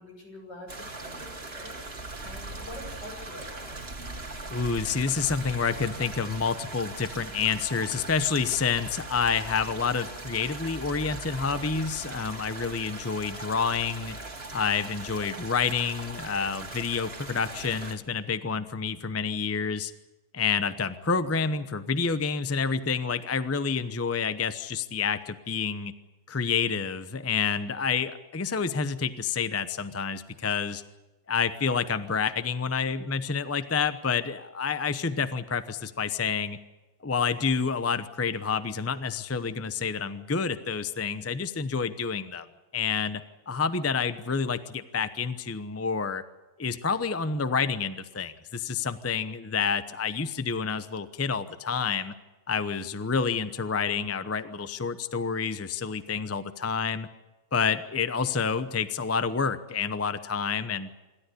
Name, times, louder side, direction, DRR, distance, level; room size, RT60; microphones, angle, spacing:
voice 1, 0.0-3.8, left 1 dB, 85° left, 1 dB, 7.3 m, -45 dB
sound 1, 0.7-17.9, right 2 dB, 35° right, 2.3 m, -40 dB
voice 2, 4.5-14.2 14.5-19.9 20.3-25.9 26.3-30.8 31.3-36.6 37.0-42.5 42.7-46.2 46.6-52.1 52.5-57.1 57.5-60.9, left 5 dB, 15° left, 12 dB, 0.5 m, -28 dB
26.5 x 13.0 x 9.9 m, 1.1 s
omnidirectional pair, 1.8 m